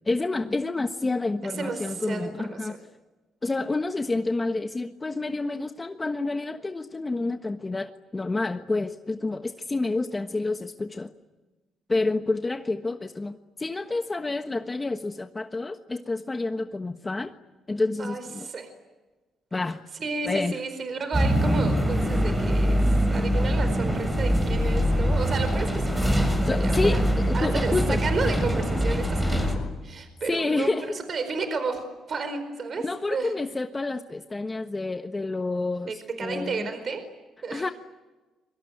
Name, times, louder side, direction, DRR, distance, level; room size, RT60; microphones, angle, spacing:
voice 1, 0.0-2.8 3.4-11.1 11.9-17.3 17.7-18.5 19.5-19.8 20.2-20.6 26.4-28.0 30.3-31.0 32.8-36.7 37.5-37.7, left 3 dB, 20° left, 7 dB, 1.3 m, -29 dB
voice 2, 1.5-2.8 18.0-18.7 20.0-22.8 23.1-27.0 27.3-29.5 29.8-33.3 35.9-37.0 37.4-37.6, right 4 dB, 45° right, 9 dB, 4.6 m, -32 dB
sound 1, 21.1-29.6, equal, 15° right, 6.7 m, -23 dB
sound 2, 24.6-29.7, left 4 dB, 55° left, 5.0 m, -38 dB
26.5 x 24.0 x 9.2 m, 1.2 s
cardioid pair, 90°, 0 cm